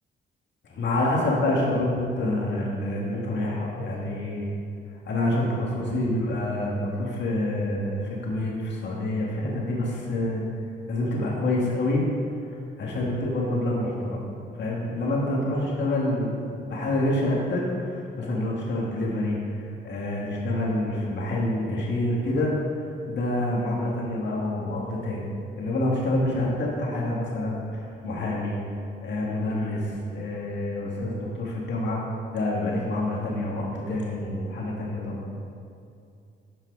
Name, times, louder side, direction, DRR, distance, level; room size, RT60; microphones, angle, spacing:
voice 1, 0.7-4.5 5.1-10.4 10.9-12.0 12.8-14.2 14.6-25.3 25.6-28.6 29.0-32.0 32.3-35.2, left 1 dB, 65° left, -3 dB, 2.1 m, -27 dB
12.5 x 4.8 x 4.8 m, 2.5 s
cardioid pair, 90°, 20 cm